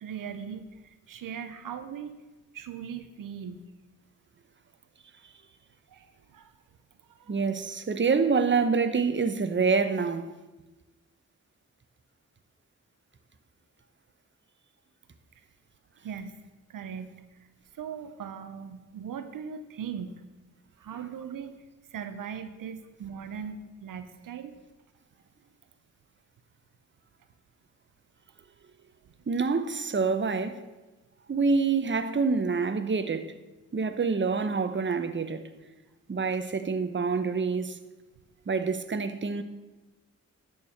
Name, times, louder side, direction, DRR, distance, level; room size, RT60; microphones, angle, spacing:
voice 1, 0.0-2.1 2.5-3.7 5.9-6.5 7.1-7.4 16.0-16.4 16.7-17.5 17.7-20.2 20.8-21.6 21.9-24.6 29.0-29.1, right 7 dB, 80° right, 0.8 m, -39 dB
voice 2, 7.3-10.3 29.3-30.6 31.3-33.2 33.7-35.4 36.1-37.8 38.5-39.4, right 4 dB, 35° right, 1.0 m, -26 dB
11.0 x 4.8 x 7.2 m
cardioid pair, 50°, 32 cm